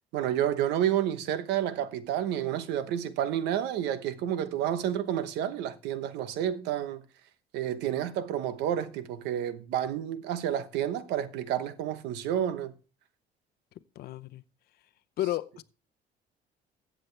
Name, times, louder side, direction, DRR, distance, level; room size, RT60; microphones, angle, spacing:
voice 1, 0.1-7.0 7.5-12.7, right 10 dB, 90° right, 1.0 m, -30 dB
voice 2, 14.0-14.4 15.2-15.6, left 14 dB, 70° left, 0.7 m, -32 dB
14.5 x 7.7 x 3.3 m
cardioid pair, 110°, 17 cm